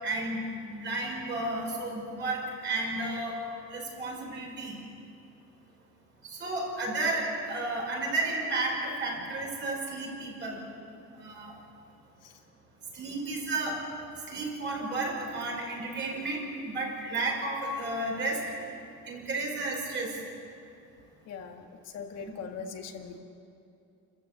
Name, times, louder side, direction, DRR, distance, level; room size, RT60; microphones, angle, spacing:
voice 1, 0.0-3.4 3.7-4.8 6.2-10.7 11.1-11.5 12.9-13.9 14.3-18.5 19.1-20.2, right 2 dB, 40° right, -1 dB, 5.6 m, -32 dB
voice 2, 21.3-23.2, left 6 dB, 55° left, 3 dB, 1.8 m, -41 dB
29.0 x 14.5 x 8.1 m, 2.7 s
cardioid pair, 160°, 30 cm